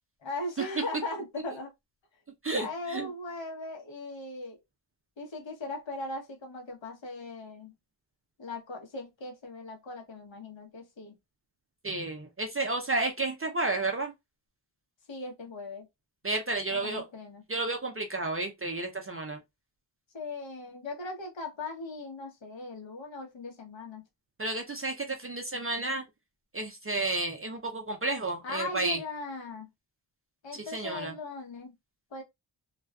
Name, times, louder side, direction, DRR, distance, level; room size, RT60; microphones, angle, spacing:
voice 1, 0.2-1.7 2.5-4.6 5.2-7.7 8.4-11.2 15.1-15.9 16.7-17.4 20.1-24.0 28.4-29.7 30.4-31.7 32.1-32.2, left 2 dB, 70° left, 1.1 m, -39 dB
voice 2, 2.4-3.1 11.8-14.1 16.2-17.0 17.5-19.4 24.4-26.1 26.5-29.0 30.5-31.1, right 2 dB, 30° right, 0.5 m, -31 dB
2.5 x 2.3 x 2.3 m
cardioid pair, 60°, 47 cm